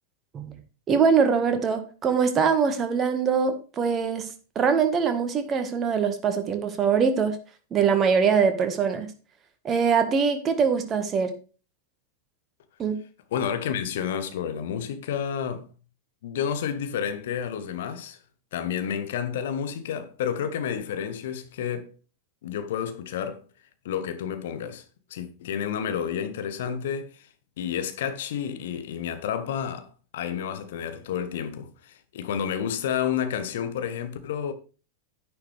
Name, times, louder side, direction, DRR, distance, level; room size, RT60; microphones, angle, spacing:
voice 1, 0.9-4.3 4.5-7.4 7.7-9.1 9.6-11.3 12.8-13.0, right 6 dB, 25° right, 1.6 m, -23 dB
voice 2, 13.3-15.7 16.2-18.2 18.5-21.9 22.4-23.4 23.8-24.8 25.1-27.3 27.6-34.5, left 8 dB, 55° left, 1.3 m, -30 dB
10.0 x 9.4 x 3.4 m
figure-of-eight pair, 90°, 0 cm